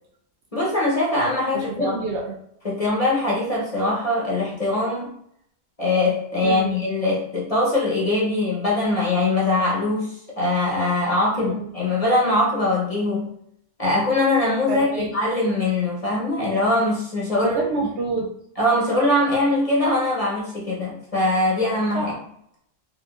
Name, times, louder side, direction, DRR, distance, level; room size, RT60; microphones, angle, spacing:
voice 1, 0.5-2.0 2.6-5.1 5.8-13.3 13.8-17.6 18.6-22.1, left 2 dB, 30° left, -6 dB, 0.9 m, -22 dB
voice 2, 1.5-2.3 6.4-6.7 11.4-11.7 14.7-15.1 17.4-18.3 21.9-22.2, right 3 dB, 65° right, 0 dB, 0.8 m, -28 dB
4.0 x 2.5 x 2.4 m, 0.71 s
omnidirectional pair, 1.3 m